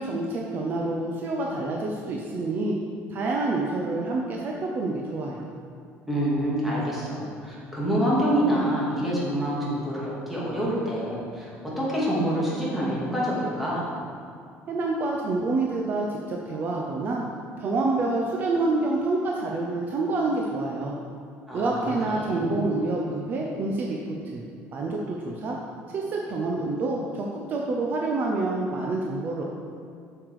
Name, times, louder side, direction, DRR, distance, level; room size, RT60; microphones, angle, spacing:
voice 1, 0.0-2.8 3.1-5.5 14.7-17.2 17.5-21.0 21.5-24.0 24.2-25.6 25.9-29.4, right 2 dB, 40° right, -1 dB, 0.8 m, -27 dB
voice 2, 6.1-11.5 11.8-13.9 21.5-22.6, equal, 5° right, -7 dB, 2.2 m, -26 dB
7.5 x 6.8 x 4.9 m, 2.3 s
cardioid pair, 155°, 5 cm